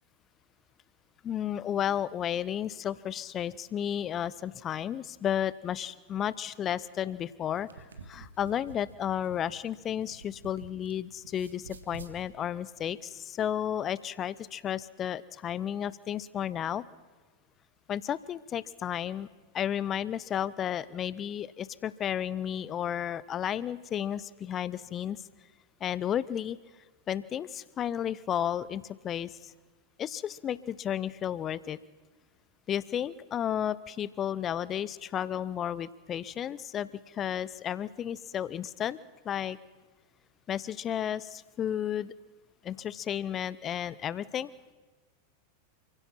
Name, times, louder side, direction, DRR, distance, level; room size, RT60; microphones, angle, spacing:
voice 1, 1.2-16.8 17.9-19.3 19.5-25.2 25.8-26.6 27.1-29.5 30.0-31.8 32.7-39.0 39.2-39.6 40.5-42.1 42.6-44.5, left 9 dB, 30° left, 19 dB, 0.7 m, -33 dB
sound 1, 7.4-10.9 11.2-12.2, right 4 dB, 70° right, 1.9 m, -49 dB
28.5 x 16.5 x 5.8 m, 1.3 s
figure-of-eight pair, 90°, 0 cm